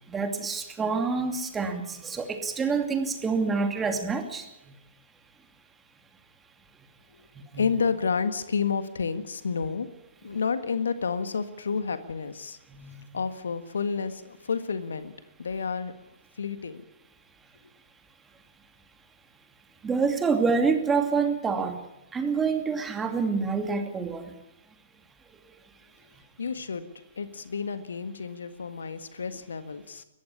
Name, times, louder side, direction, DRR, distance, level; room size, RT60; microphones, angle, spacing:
voice 1, 0.1-4.5 7.5-7.6 12.7-13.0 19.8-21.8 22.1-24.3, right 5 dB, 15° right, 6 dB, 2.6 m, -27 dB
voice 2, 7.5-9.9 10.2-12.6 13.1-15.1 15.4-15.9 16.4-16.8 26.4-26.9 27.1-30.0, left 5 dB, 75° left, 11 dB, 1.6 m, -30 dB
21.5 x 14.5 x 9.9 m, 0.90 s
figure-of-eight pair, 120°, 0 cm